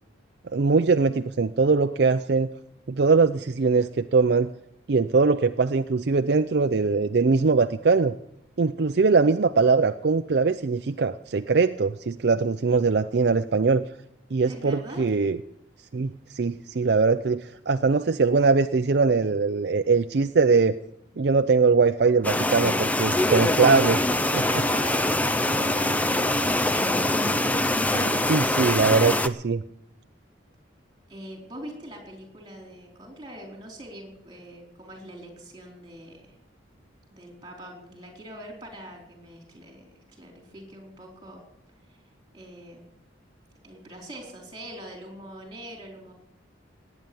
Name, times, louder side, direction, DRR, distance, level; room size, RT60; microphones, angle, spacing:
voice 1, 0.5-2.5 2.9-4.5 4.9-8.2 8.6-13.8 14.3-15.4 15.9-20.8 21.2-24.0 24.3-24.4 27.9-29.6, right 4 dB, 55° right, 9 dB, 0.5 m, -21 dB
voice 2, 14.5-15.1 24.4-28.0 31.1-36.3 37.1-41.4 41.8-42.0 42.3-42.8 43.6-46.1, equal, 20° right, 1 dB, 4.4 m, -42 dB
sound 1, 22.2-29.3, left 1 dB, 10° left, 0.5 m, -23 dB
18.5 x 9.2 x 7.1 m, 0.79 s
head